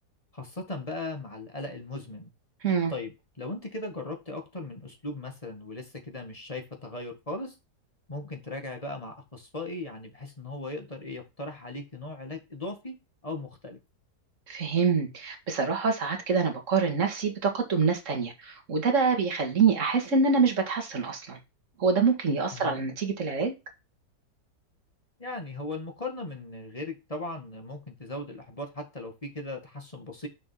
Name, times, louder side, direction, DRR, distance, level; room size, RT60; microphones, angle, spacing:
voice 1, 0.3-2.3 2.9-7.5 8.1-13.0 13.2-13.8 22.5-22.8 25.2-30.3, left 2 dB, 20° left, 1.8 m, -38 dB
voice 2, 14.5-21.4 21.8-23.5, right 5 dB, 45° right, 2.3 m, -25 dB
6.9 x 5.4 x 5.6 m
omnidirectional pair, 1.9 m